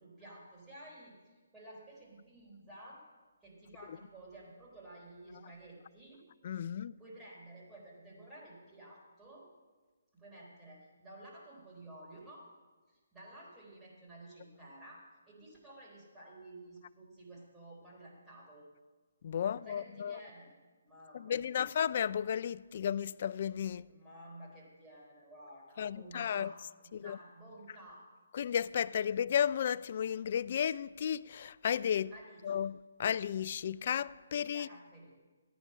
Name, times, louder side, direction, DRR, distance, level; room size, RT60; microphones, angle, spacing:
voice 1, 0.0-3.0 3.4-6.2 7.0-9.4 10.1-12.5 12.9-18.7 19.4-20.5 20.8-21.7 23.9-28.1 32.1-32.6 34.5-35.2, right 1 dB, 10° right, 4.0 m, -53 dB
voice 2, 6.4-7.0 19.2-20.2 21.1-23.9 25.8-26.5 26.9-27.2 28.3-32.1 32.4-34.7, left 8 dB, 45° left, 0.3 m, -33 dB
14.0 x 9.6 x 5.6 m
figure-of-eight pair, 150°, 0 cm